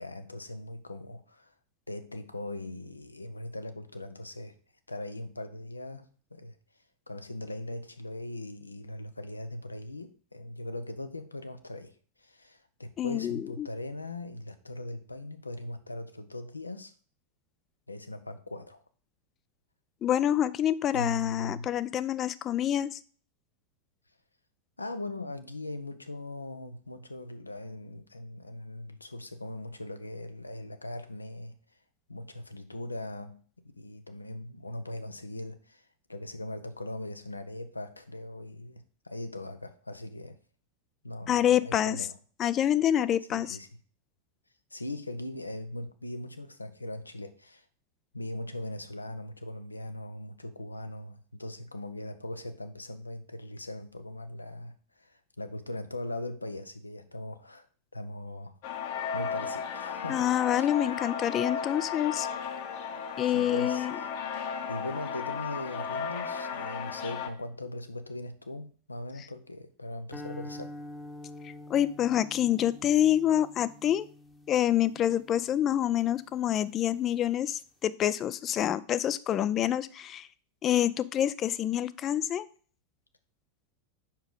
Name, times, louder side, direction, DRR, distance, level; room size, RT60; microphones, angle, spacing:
voice 1, 0.0-1.5 1.9-4.5 4.9-6.5 7.1-11.9 12.2-16.9 17.9-18.8 20.9-21.7 24.8-31.6 32.1-33.4 33.7-40.4 41.0-42.2 43.3-43.7 44.7-47.6 48.1-57.7 57.9-58.6 59.1-60.7 63.3-64.1 64.7-70.7, left 1 dB, 80° left, 0.8 m, -40 dB
voice 2, 13.0-13.7 20.0-23.0 41.3-42.0 42.4-43.6 60.1-62.3 63.2-63.9 71.4-74.1 74.5-80.3 80.6-82.5, left 11 dB, 30° left, 0.4 m, -27 dB
sound 1, 58.6-67.3, left 6 dB, 50° left, 1.1 m, -35 dB
sound 2, 70.1-76.5, left 2 dB, 10° left, 1.0 m, -47 dB
7.4 x 6.1 x 3.6 m
figure-of-eight pair, 90°, 0 cm